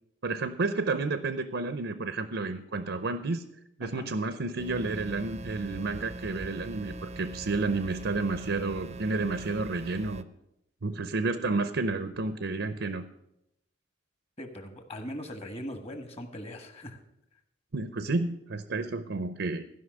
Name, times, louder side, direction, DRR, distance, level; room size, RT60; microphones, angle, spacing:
voice 1, 0.2-3.4 3.8-10.2 10.8-13.0 17.7-19.6, right 3 dB, 80° right, 11 dB, 0.7 m, -31 dB
sound 1, 4.6-10.2, right 2 dB, 35° right, 0.6 m, -41 dB
voice 2, 14.4-17.0, equal, 35° left, 6 dB, 1.6 m, -40 dB
15.0 x 5.6 x 7.8 m, 0.82 s
head